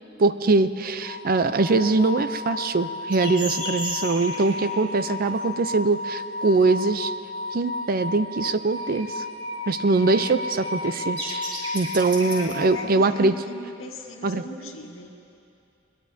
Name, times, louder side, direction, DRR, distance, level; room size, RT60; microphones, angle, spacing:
voice 1, 0.2-7.1 7.5-9.2 9.7-11.4 11.7-13.3 14.2-14.4, right 3 dB, 45° right, 11 dB, 0.5 m, -22 dB
sound 1, 1.0-13.2, left 2 dB, 5° left, 3.3 m, -34 dB
sound 2, 3.1-4.5 8.8-9.0 9.4-12.5, equal, 25° right, 4.3 m, -34 dB
voice 2, 12.0-15.4, left 1 dB, 85° left, 0 dB, 1.8 m, -39 dB
23.0 x 21.5 x 2.7 m, 2.7 s
head